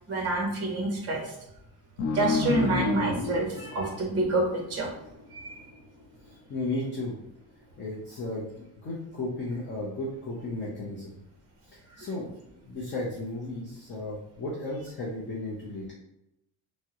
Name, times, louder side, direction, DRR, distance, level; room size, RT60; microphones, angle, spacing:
voice 1, 0.1-1.3 2.1-4.9 5.3-5.6 12.0-12.1, right 2 dB, 35° right, 0 dB, 0.8 m, -28 dB
sound 1, 2.0-5.1, left 4 dB, 75° left, 0.7 m, -30 dB
voice 2, 6.2-7.2 7.8-11.2 11.7-12.3 12.5-15.9, left 2 dB, 25° left, -7 dB, 0.5 m, -34 dB
3.5 x 2.1 x 2.8 m, 0.83 s
cardioid pair, 165°, 44 cm